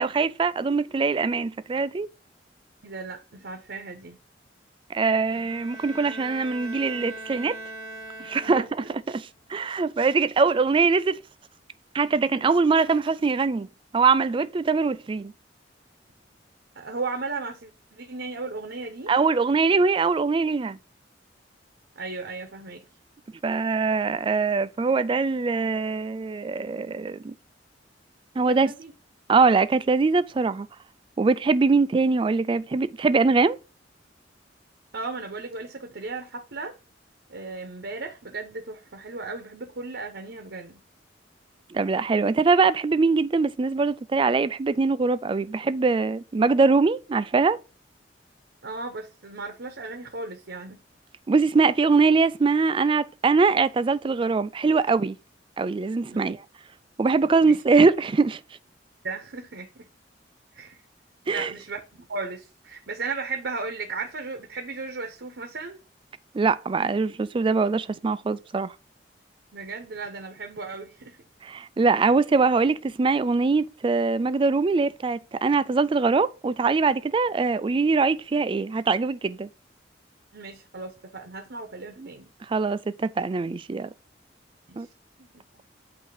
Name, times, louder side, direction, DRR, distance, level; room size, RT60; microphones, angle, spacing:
voice 1, 0.0-2.1 4.9-7.6 8.2-8.6 8.9-11.2 11.9-13.7 13.9-15.3 19.1-20.8 23.4-27.3 28.4-28.7 29.3-30.7 31.2-33.6 41.7-47.6 51.3-55.2 55.6-56.4 57.0-58.4 61.3-61.5 66.3-68.7 71.4-79.5 82.0-82.1 82.5-83.9 84.8-84.9, right 4 dB, 30° right, 0.3 m, -22 dB
voice 2, 2.8-4.2 8.5-8.9 16.8-19.1 22.0-22.8 28.4-28.9 34.9-36.7 37.3-40.8 48.6-50.8 57.4-57.6 59.0-59.8 60.5-60.8 61.3-65.8 69.5-71.2 80.3-82.3 84.7-84.8, right 3 dB, 70° right, 0.9 m, -35 dB
Bowed string instrument, 5.3-9.0, right 2 dB, 45° left, 3.3 m, -40 dB
8.2 x 2.8 x 4.7 m
head